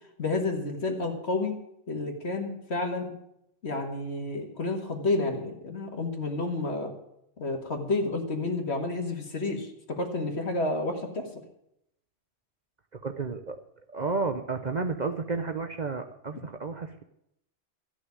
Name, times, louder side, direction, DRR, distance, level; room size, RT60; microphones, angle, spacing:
voice 1, 0.2-1.6 1.9-3.1 3.6-6.9 7.4-11.3, left 2 dB, 60° left, 3 dB, 2.0 m, -30 dB
voice 2, 12.9-13.6 13.9-17.0, right 4 dB, 45° right, 6 dB, 0.7 m, -32 dB
13.5 x 6.2 x 9.5 m, 0.79 s
omnidirectional pair, 1.2 m